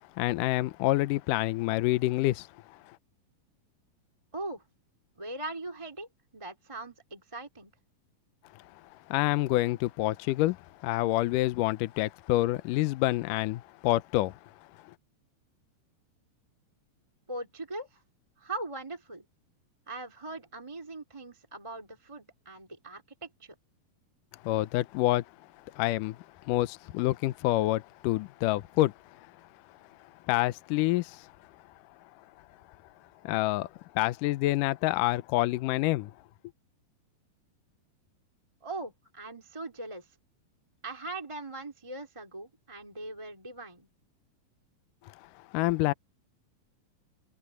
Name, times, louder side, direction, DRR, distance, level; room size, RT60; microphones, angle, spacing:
voice 1, 0.2-2.5 9.1-10.6 10.8-14.4 24.4-25.2 25.7-29.2 30.3-31.3 33.2-33.7 33.9-36.1 45.5-45.9, left 17 dB, 80° left, 2.1 m, -27 dB
voice 2, 4.3-4.6 5.2-6.1 6.3-7.7 17.3-18.0 18.4-19.3 19.9-23.6 38.6-40.2 40.8-43.9, right 2 dB, 10° right, 2.4 m, -40 dB
omnidirectional pair, 4.1 m